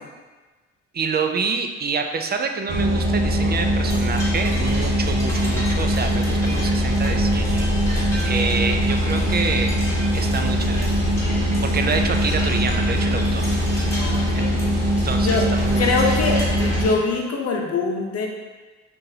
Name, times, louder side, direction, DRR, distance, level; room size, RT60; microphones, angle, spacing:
voice 1, 0.9-9.7 10.1-10.9 11.6-13.5 14.3-14.4 15.0-16.0, right 5 dB, 35° right, 5 dB, 0.4 m, -27 dB
sound 1, 2.7-16.9, equal, 55° right, 1.2 m, -21 dB
sound 2, 3.8-17.0, equal, 10° left, 1.3 m, -35 dB
voice 2, 13.9-14.6 15.2-15.5 15.8-18.3, left 4 dB, 55° left, 1 dB, 0.8 m, -23 dB
5.6 x 2.7 x 2.7 m, 1.3 s
cardioid pair, 75°, 31 cm